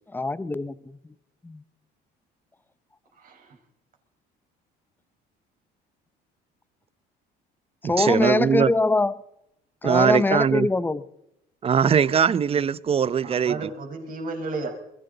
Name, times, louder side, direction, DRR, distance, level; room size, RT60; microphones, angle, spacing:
voice 1, 0.1-0.8 1.4-1.6 7.8-9.2 9.8-11.0, left 2 dB, 10° left, 0.7 m, -23 dB
voice 2, 3.2-3.6 12.5-12.6 13.2-14.7, right 3 dB, 45° right, 5.0 m, -33 dB
voice 3, 8.0-8.7 9.8-10.7 11.6-13.7, right 7 dB, 30° right, 0.6 m, -21 dB
22.0 x 15.0 x 4.0 m
cardioid pair, 110°, 19 cm